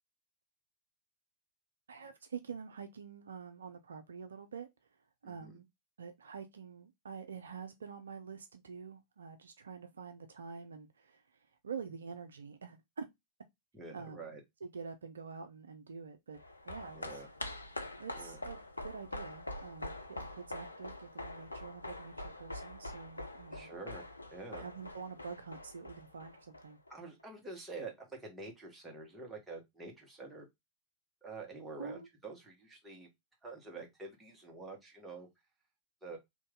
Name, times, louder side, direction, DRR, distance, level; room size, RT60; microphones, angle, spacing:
voice 1, 1.9-4.7 5.2-5.7 6.0-13.1 13.9-14.3 14.6-16.4 16.6-17.2 18.0-18.6 18.8-20.0 20.4-23.7 24.6-26.8 31.8-32.1, right 5 dB, 70° right, 0.4 m, -46 dB
voice 2, 5.2-5.6 13.7-14.4 16.9-17.3 18.1-18.4 23.5-24.7 26.9-30.5 31.2-33.1 33.4-35.3 36.0-36.2, right 3 dB, 10° right, 1.3 m, -47 dB
sound 1, 16.3-26.9 27.2-27.3, left 1 dB, 80° left, 0.4 m, -45 dB
3.1 x 2.6 x 3.5 m
figure-of-eight pair, 90°, 0 cm